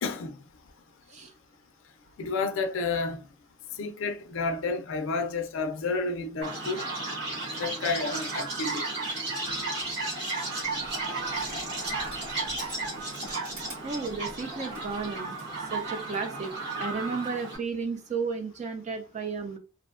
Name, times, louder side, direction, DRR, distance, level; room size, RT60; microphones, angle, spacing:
voice 1, 0.0-0.3 2.2-3.2 3.8-6.8 7.5-8.8, left 4 dB, 65° left, 0.4 m, -30 dB
Chirp tweet, 6.4-17.6, right 3 dB, 50° right, 1.0 m, -33 dB
Crushing, 10.8-15.5, right 1 dB, 80° right, 1.5 m, -48 dB
voice 2, 13.8-16.5 16.8-19.6, right 4 dB, 30° right, 0.3 m, -33 dB
2.5 x 2.1 x 2.4 m
head